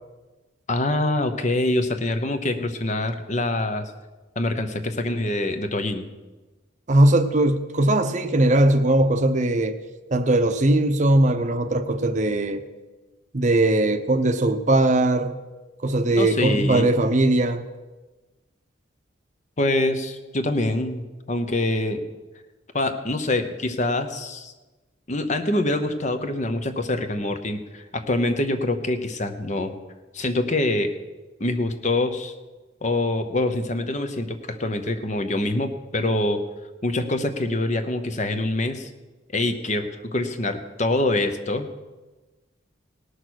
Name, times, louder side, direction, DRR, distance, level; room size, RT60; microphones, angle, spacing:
voice 1, 0.7-3.9 4.4-6.1 16.2-16.9 19.6-22.1 22.7-24.5 25.1-29.8 30.1-30.9 31.4-32.3 32.8-36.4 36.8-38.9 39.3-41.7, left 2 dB, 40° left, 8 dB, 0.9 m, -25 dB
voice 2, 6.9-9.8 10.1-12.6 13.3-15.3 15.8-17.6, right 1 dB, 40° right, 9 dB, 0.7 m, -20 dB
18.5 x 6.5 x 6.3 m, 1.2 s
head